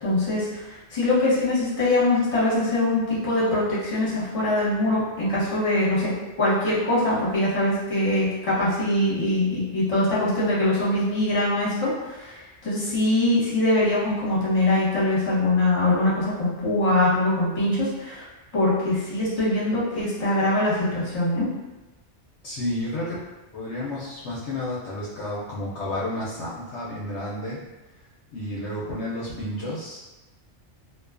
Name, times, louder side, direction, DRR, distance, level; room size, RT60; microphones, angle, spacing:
voice 1, 0.0-6.1 6.4-18.2 18.5-21.5, left 1 dB, 30° left, -9 dB, 0.9 m, -23 dB
voice 2, 22.4-23.3 23.5-27.6 28.3-30.1, left 1 dB, 70° left, -7 dB, 0.8 m, -31 dB
2.5 x 2.2 x 2.4 m, 1.1 s
omnidirectional pair, 1.3 m